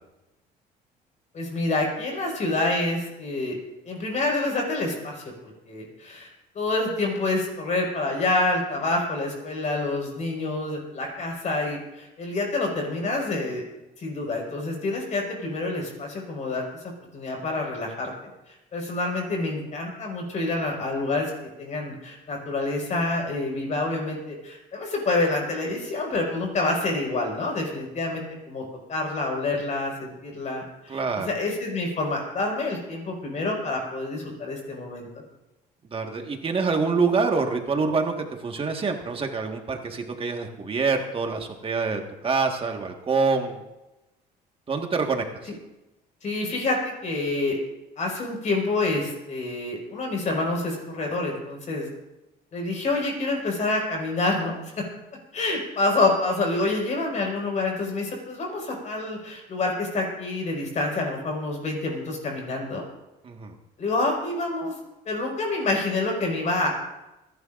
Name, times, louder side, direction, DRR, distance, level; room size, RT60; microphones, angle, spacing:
voice 1, 1.3-3.6 3.9-6.3 6.6-13.6 14.0-21.3 21.6-35.1 46.2-47.6 48.0-51.9 52.5-54.8 55.3-62.8 63.8-64.7 65.1-66.7, left 2 dB, 45° left, 0 dB, 5.2 m, -27 dB
voice 2, 30.9-31.3 35.9-43.6 44.7-45.5 63.2-63.5, right 4 dB, 35° right, 4 dB, 1.6 m, -26 dB
27.5 x 11.0 x 2.6 m, 0.99 s
cardioid pair, 110°, 17 cm